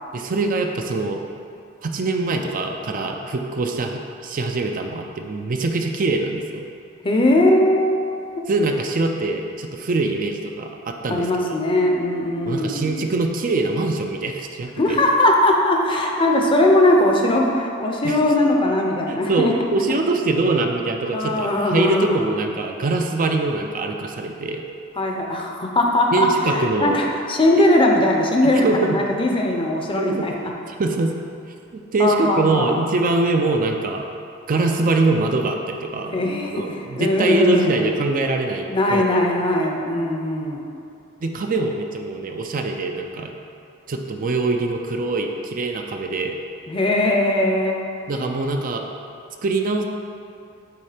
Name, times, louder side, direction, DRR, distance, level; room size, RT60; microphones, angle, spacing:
voice 1, 0.1-1.2 1.8-6.7 8.5-11.3 12.5-15.0 18.0-18.2 19.1-24.6 26.1-27.0 28.6-29.0 29.9-30.3 30.8-31.2 31.7-34.1 34.5-36.2 36.5-39.0 41.2-43.3 43.9-46.4 48.1-48.8 49.4-49.8, right 3 dB, 40° right, 3 dB, 0.5 m, -23 dB
voice 2, 7.0-8.0 11.1-12.9 14.8-19.5 21.1-22.4 25.0-30.5 32.0-32.8 36.1-38.0 38.7-40.6 46.7-47.8, left 1 dB, 25° left, 1 dB, 0.7 m, -20 dB
8.6 x 3.2 x 5.0 m, 2.6 s
head